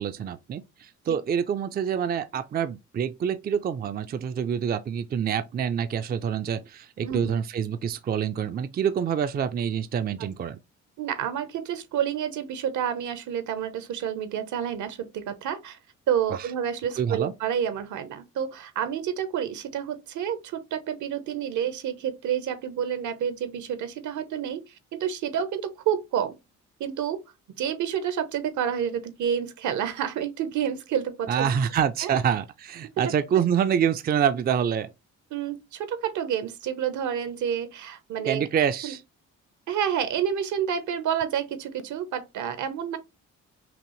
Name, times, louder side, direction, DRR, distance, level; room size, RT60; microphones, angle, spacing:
voice 1, 0.0-10.6 16.3-16.5 17.0-17.3 31.3-34.9 38.2-39.0, right 8 dB, 30° right, 0.4 m, -26 dB
voice 2, 11.0-15.8 16.1-26.4 26.8-27.2 27.6-31.6 32.0-32.2 33.0-33.1 35.3-38.4 38.8-38.9 39.7-43.0, right 9 dB, 75° right, 0.9 m, -29 dB
5.8 x 2.0 x 3.0 m
cardioid pair, 90°, 30 cm